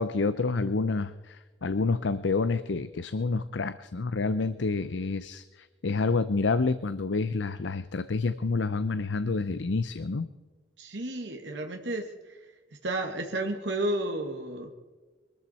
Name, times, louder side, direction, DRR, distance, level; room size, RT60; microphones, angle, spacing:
voice 1, 0.0-10.3, left 3 dB, 85° left, 13 dB, 0.7 m, -28 dB
voice 2, 10.8-12.0 12.8-14.7, right 1 dB, 75° right, 3 dB, 1.9 m, -31 dB
23.0 x 13.5 x 4.3 m, 1.3 s
head